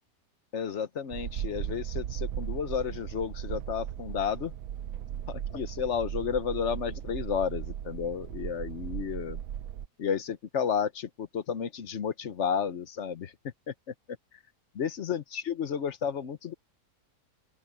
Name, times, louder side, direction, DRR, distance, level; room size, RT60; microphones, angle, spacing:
voice 1, 0.5-4.5 5.3-9.4 10.0-13.3 13.7-13.8 14.7-16.5, left 7 dB, 50° left, 1.0 m, -32 dB
sound 1, 1.1-9.9, right 10 dB, 65° right, 1.0 m, -37 dB
open air
omnidirectional pair, 1.8 m